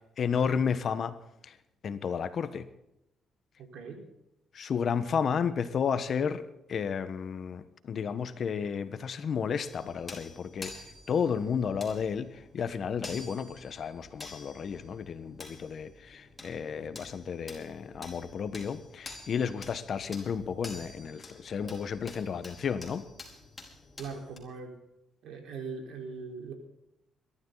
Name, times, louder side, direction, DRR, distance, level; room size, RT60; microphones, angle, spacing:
voice 1, 0.2-1.2 1.4-1.5 1.8-2.7 4.5-6.4 6.7-23.0, left 6 dB, 55° left, 12 dB, 1.3 m, -32 dB
voice 2, 3.6-4.0 24.0-24.7 25.2-26.5, right 5 dB, 75° right, 3 dB, 4.5 m, -40 dB
sound 1, 9.6-24.4, left 2 dB, 20° left, 4.8 m, -49 dB
22.5 x 12.5 x 4.1 m, 0.87 s
cardioid pair, 90°, 0 cm